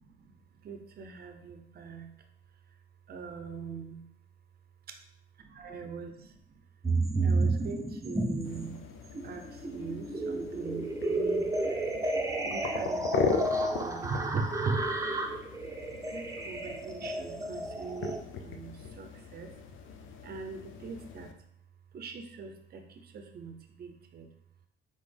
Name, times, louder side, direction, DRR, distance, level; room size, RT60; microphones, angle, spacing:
voice 1, 0.0-2.1 2.5-2.8 3.1-4.1 4.9-5.0 5.3-6.6 7.2-8.9 9.2-11.9 12.4-14.8 16.1-19.6 20.2-21.3 21.9-24.3, right 4 dB, 50° right, 6 dB, 0.7 m, -41 dB
sound 1, 6.8-8.7 9.1-18.2, right 2 dB, 15° right, 0.6 m, -32 dB
sound 2, 8.4-21.3, left 5 dB, 80° left, 0.5 m, -39 dB
4.2 x 3.6 x 3.3 m, 0.70 s
cardioid pair, 90°, 20 cm